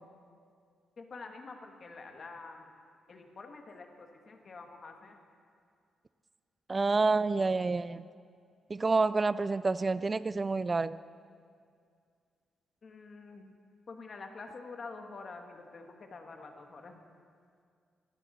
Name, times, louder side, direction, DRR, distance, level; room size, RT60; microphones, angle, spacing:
voice 1, 1.0-2.6 3.1-5.2 12.8-13.5 13.9-17.0, left 4 dB, 35° left, 4 dB, 1.4 m, -47 dB
voice 2, 6.7-8.1 8.7-11.0, right 3 dB, 20° right, 16 dB, 0.3 m, -28 dB
19.5 x 16.5 x 4.1 m, 2.2 s
wide cardioid pair, 180°, 0 cm